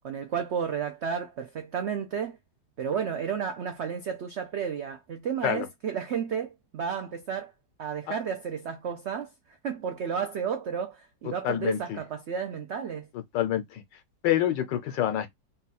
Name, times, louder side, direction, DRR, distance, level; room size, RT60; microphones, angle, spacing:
voice 1, 0.0-2.4 2.8-7.5 7.8-9.3 9.6-13.1, right 7 dB, 90° right, 0.6 m, -32 dB
voice 2, 11.4-12.0 13.3-13.8 14.2-15.3, left 11 dB, 85° left, 1.5 m, -26 dB
3.9 x 2.4 x 4.1 m
omnidirectional pair, 1.9 m